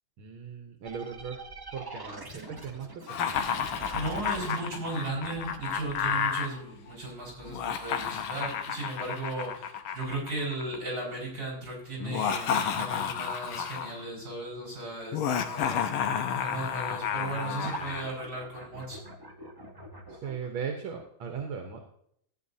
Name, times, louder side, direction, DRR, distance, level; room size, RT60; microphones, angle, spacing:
voice 1, 0.2-1.4 1.7-3.3 20.1-21.9, right 6 dB, 85° right, 3 dB, 1.9 m, -38 dB
sound 1, 0.8-10.3 17.6-20.5, right 2 dB, 25° right, 0.4 m, -45 dB
Laughter, 3.1-6.5 7.5-10.8 12.0-14.0 15.1-18.1, left 8 dB, 90° left, 1.7 m, -31 dB
voice 2, 3.9-15.9 16.4-19.0, right 2 dB, 50° right, -5 dB, 5.3 m, -36 dB
13.5 x 9.1 x 2.7 m, 0.69 s
omnidirectional pair, 2.2 m